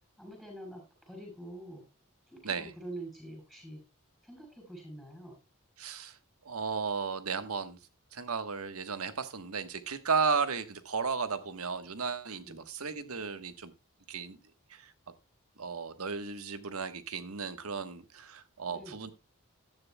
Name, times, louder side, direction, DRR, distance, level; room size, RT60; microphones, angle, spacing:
voice 1, 0.2-1.8 2.3-3.8 4.2-5.4 12.4-12.6 18.7-19.0, right 1 dB, ahead, 6.9 m, -46 dB
voice 2, 5.8-6.2 6.4-7.8 8.1-13.7 14.1-14.4 14.7-14.9 15.6-19.1, right 5 dB, 90° right, 1.3 m, -34 dB
14.5 x 10.5 x 2.2 m
head